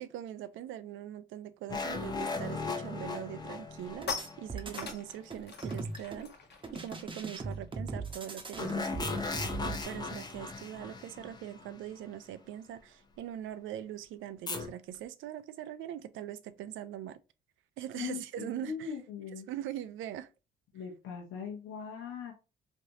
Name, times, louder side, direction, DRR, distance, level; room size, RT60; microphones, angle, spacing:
voice 1, 0.0-4.1 4.4-6.3 6.7-9.1 9.6-17.2 17.8-18.9 19.5-20.3, right 11 dB, 80° right, 0.4 m, -42 dB
sound 1, 1.7-5.2 8.6-11.9 14.5-14.7, left 4 dB, 20° left, 0.6 m, -37 dB
sound 2, 3.6-9.3 9.5-9.8 10.0-15.1, left 4 dB, 60° left, 1.0 m, -46 dB
sound 3, 4.0-4.9 5.3-6.3 6.6-9.8, right 3 dB, 25° right, 0.8 m, -39 dB
voice 2, 17.9-19.5 20.7-22.3, left 7 dB, 85° left, 0.8 m, -40 dB
3.3 x 2.6 x 2.7 m
cardioid pair, 90°, 20 cm